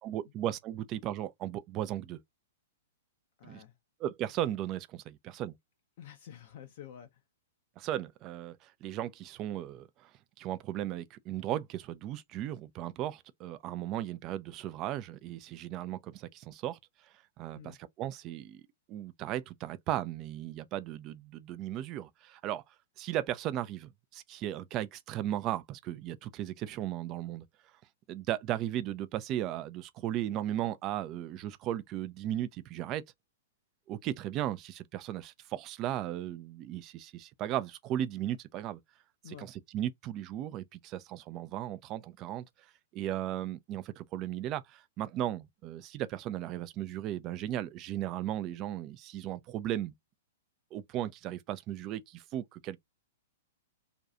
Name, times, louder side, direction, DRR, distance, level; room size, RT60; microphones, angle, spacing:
voice 1, 0.0-2.2 3.4-3.6 4.0-5.5 7.8-10.1 10.4-16.8 17.4-17.6 18.0-18.6 18.9-22.6 23.0-27.5 28.1-33.0 33.9-38.8 39.4-39.5 39.7-42.5 42.9-49.9 50.7-52.8, right 12 dB, 30° right, 0.3 m, -36 dB
voice 2, 3.4-3.8 6.0-7.2 17.5-17.8 39.2-39.5, left 10 dB, 50° left, 0.5 m, -49 dB
2.5 x 2.3 x 2.6 m
figure-of-eight pair, 105°, 0 cm